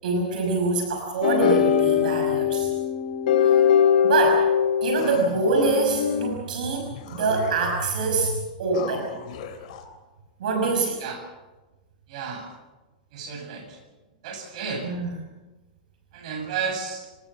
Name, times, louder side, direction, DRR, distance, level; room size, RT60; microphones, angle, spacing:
voice 1, 0.0-2.7 4.0-4.5 4.8-9.1 10.4-11.0 14.8-15.1, right 3 dB, 75° right, 2 dB, 5.8 m, -25 dB
sound 1, 1.2-6.3, left 8 dB, 80° left, 3.4 m, -21 dB
sound 2, 5.0-5.8 6.5-6.6 6.9-8.0 8.7-9.9, left 6 dB, 60° left, 3.1 m, -39 dB
voice 2, 12.1-12.5 13.1-13.8 14.2-14.9 16.1-17.1, right 6 dB, 55° right, 3 dB, 7.5 m, -32 dB
25.5 x 19.0 x 7.2 m, 1.2 s
supercardioid pair, 155°, 4 cm